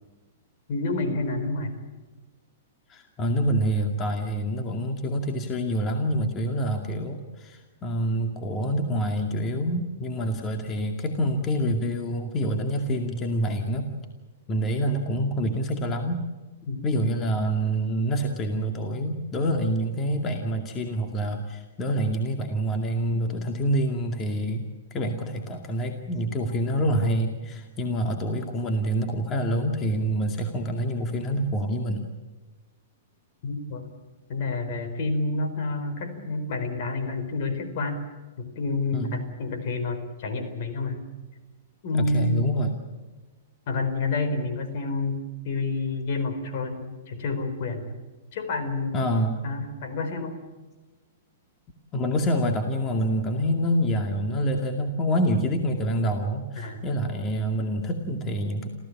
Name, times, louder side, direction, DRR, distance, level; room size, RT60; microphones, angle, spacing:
voice 1, 0.7-1.8 16.7-16.8 33.4-33.9 34.3-38.0 38.4-41.0 41.8-42.5 43.7-48.0 48.3-49.0 49.4-50.4 56.5-56.8, left 3 dB, 55° left, 7 dB, 4.5 m, -29 dB
voice 2, 2.9-13.9 14.5-16.2 16.8-32.1 38.9-39.1 41.9-42.8 48.9-49.4 51.9-58.7, equal, 25° left, 4 dB, 2.3 m, -26 dB
27.0 x 15.5 x 8.6 m, 1.2 s
hypercardioid pair, 125°, 0 cm